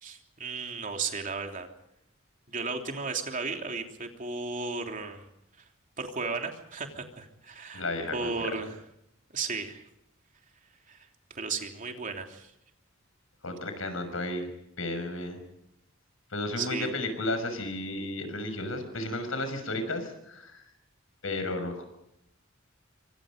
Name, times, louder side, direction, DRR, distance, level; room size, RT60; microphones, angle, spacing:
voice 1, 0.0-1.7 2.5-5.3 6.0-7.9 8.1-8.8 9.3-9.8 10.9-12.5 16.6-16.9, right 4 dB, 40° right, 3 dB, 3.2 m, -35 dB
voice 2, 7.7-8.5 13.4-14.5 14.8-15.4 16.3-20.6 21.2-21.8, left 2 dB, 90° left, 8 dB, 6.2 m, -33 dB
26.5 x 25.0 x 5.2 m, 0.79 s
head